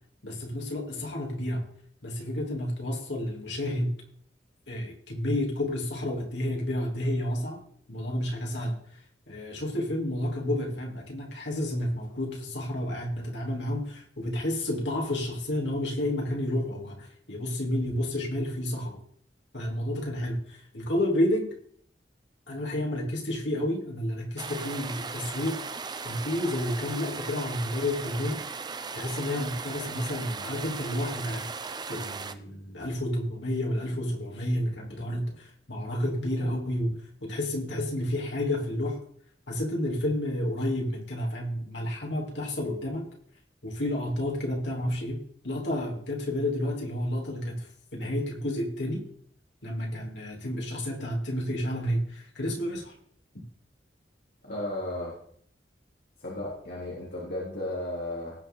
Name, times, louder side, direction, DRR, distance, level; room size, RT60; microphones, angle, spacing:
voice 1, 0.2-1.6 2.0-3.9 4.7-7.6 7.9-9.0 9.3-19.0 19.5-21.5 22.5-25.6 26.0-28.4 28.9-31.5 31.9-36.9 37.2-39.0 39.5-43.1 43.6-49.0 49.6-52.9, left 1 dB, 90° left, -1 dB, 3.2 m, -30 dB
sound 1, 24.4-32.3, right 5 dB, 25° right, 0.6 m, -37 dB
voice 2, 54.4-55.1 56.2-58.3, left 1 dB, 65° left, -6 dB, 3.4 m, -34 dB
18.0 x 6.7 x 3.9 m, 0.63 s
head